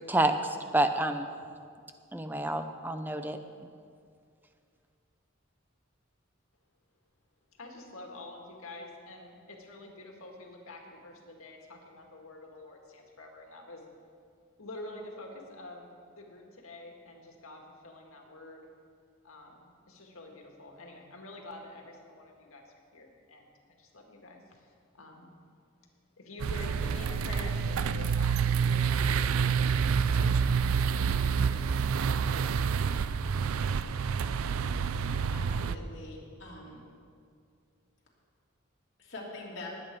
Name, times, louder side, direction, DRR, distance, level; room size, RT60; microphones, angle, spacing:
voice 1, 0.1-1.3 2.1-3.4, right 2 dB, 10° right, 8 dB, 0.5 m, -28 dB
voice 2, 7.6-13.8 14.6-18.7 19.2-23.5 23.8-25.3 26.2-31.6, left 2 dB, 90° left, 1 dB, 2.0 m, -48 dB
sound 1, 26.4-35.8, right 6 dB, 85° right, 0.4 m, -28 dB
voice 3, 35.3-36.8 39.0-39.7, left 2 dB, 60° left, -4 dB, 2.8 m, -44 dB
19.5 x 8.6 x 4.7 m, 2.3 s
head